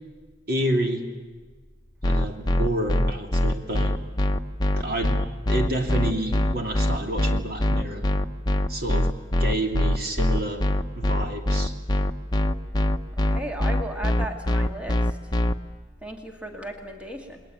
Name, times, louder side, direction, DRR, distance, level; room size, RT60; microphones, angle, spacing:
voice 1, 0.5-1.1 2.0-3.9 4.8-5.2 5.5-8.1 8.7-9.1 9.4-10.7 11.0-11.7, right 1 dB, 50° right, 4 dB, 3.0 m, -29 dB
sound 1, 2.0-15.5, left 1 dB, 20° left, 1.0 m, -22 dB
voice 2, 13.3-15.1 16.0-17.4, right 1 dB, 5° right, 2 dB, 2.2 m, -35 dB
29.5 x 21.0 x 9.2 m, 1.3 s
head